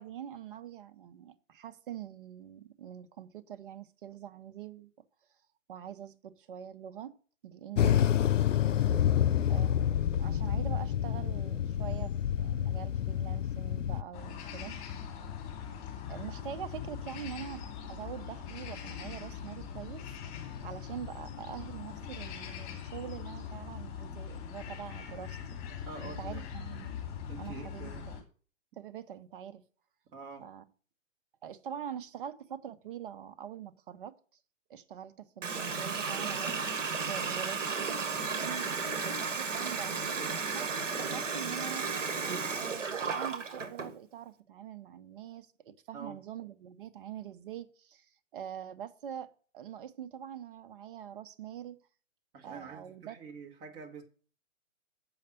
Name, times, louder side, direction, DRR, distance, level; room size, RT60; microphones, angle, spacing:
voice 1, 0.0-4.9 5.7-7.2 7.4-8.1 9.5-14.8 16.1-20.0 20.6-25.6 26.0-27.0 27.4-28.2 28.8-29.6 30.4-30.6 31.4-34.1 34.7-36.6 37.1-38.7 39.0-41.9 42.6-48.1 48.3-51.8 52.4-53.2, right 9 dB, 45° right, 0.9 m, -44 dB
sound 1, 7.8-14.0, left 10 dB, 75° left, 0.7 m, -28 dB
voice 2, 8.8-9.2 25.9-26.5 27.3-28.1 30.1-30.5 45.9-46.2 52.3-54.0, right 5 dB, 25° right, 1.6 m, -46 dB
sound 2, 14.1-28.2, left 7 dB, 30° left, 2.3 m, -42 dB
Water tap faucet, 35.4-43.9, right 5 dB, 70° right, 1.5 m, -34 dB
7.5 x 5.4 x 7.6 m
hypercardioid pair, 140°, 38 cm